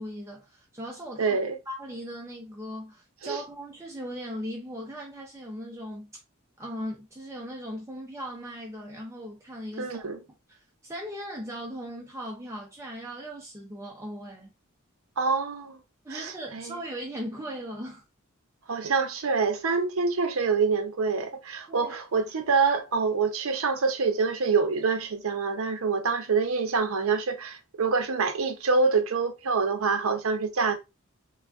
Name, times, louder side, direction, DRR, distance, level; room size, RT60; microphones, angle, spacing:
voice 1, 0.0-1.4 1.7-6.1 6.6-9.9 10.5-14.5 16.0-18.0 21.7-22.2, equal, 15° right, 0.6 m, -38 dB
voice 2, 1.2-1.6 3.2-3.4 9.8-10.2 15.2-15.8 16.1-16.8 18.7-30.7, right 4 dB, 75° right, 0.6 m, -26 dB
3.4 x 2.3 x 2.3 m
head